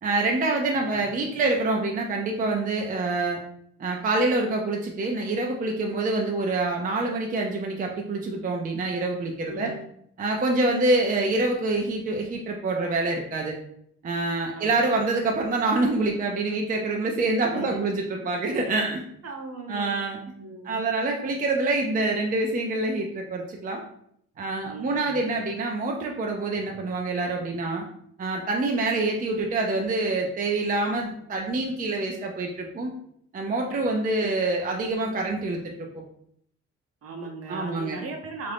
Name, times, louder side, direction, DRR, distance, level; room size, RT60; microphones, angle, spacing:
voice 1, 0.0-3.4 3.8-9.7 10.2-13.6 14.0-19.0 19.7-20.2 20.6-23.8 24.4-27.9 28.2-32.9 33.3-35.9 37.5-38.0, right 2 dB, 30° right, 1 dB, 0.5 m, -26 dB
voice 2, 0.7-1.2 9.5-9.8 14.5-15.0 17.5-17.9 19.2-20.0 20.4-20.9 24.7-25.2 34.2-34.4 37.0-38.5, right 3 dB, 50° right, 3 dB, 0.8 m, -38 dB
2.7 x 2.5 x 3.4 m, 0.69 s
cardioid pair, 90°, 30 cm